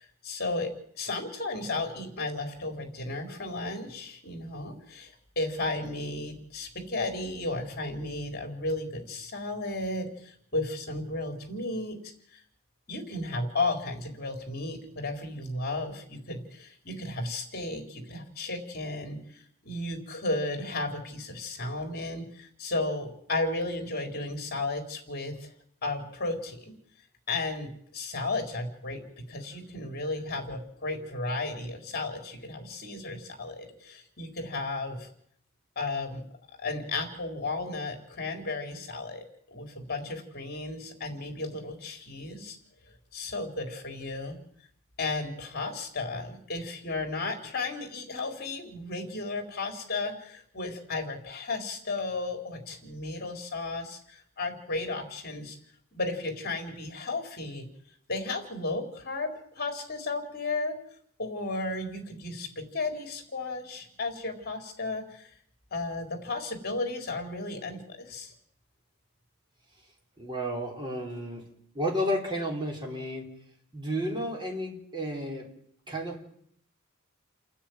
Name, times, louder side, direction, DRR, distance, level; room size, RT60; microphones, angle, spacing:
voice 1, 0.0-12.4 12.9-25.5 25.8-26.7 27.3-29.0 29.3-35.1 35.8-36.2 36.6-42.6 43.1-44.4 45.0-55.6 55.9-57.7 58.1-60.8 61.2-65.3 65.7-68.3, left 2 dB, 45° left, 5 dB, 4.0 m, -34 dB
voice 2, 70.2-71.4 71.7-73.3 73.7-75.5 75.9-76.2, equal, 20° right, -1 dB, 4.6 m, -32 dB
29.5 x 10.0 x 9.4 m, 0.68 s
head